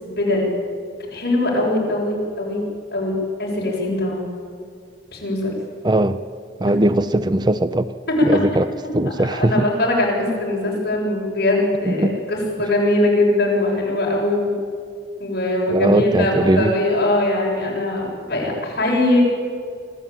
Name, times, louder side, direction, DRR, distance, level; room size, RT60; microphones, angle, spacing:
voice 1, 0.0-0.5 1.1-2.6 2.9-3.1 3.4-4.2 5.1-5.5 8.1-8.3 8.8-14.5 15.2-19.2, left 1 dB, 55° left, -3 dB, 7.3 m, -21 dB
voice 2, 5.8-6.2 6.6-7.9 8.2-8.7 8.9-9.7 11.9-12.2 15.7-16.7, right 1 dB, 20° right, 12 dB, 0.5 m, -19 dB
25.0 x 14.5 x 9.1 m, 2.2 s
head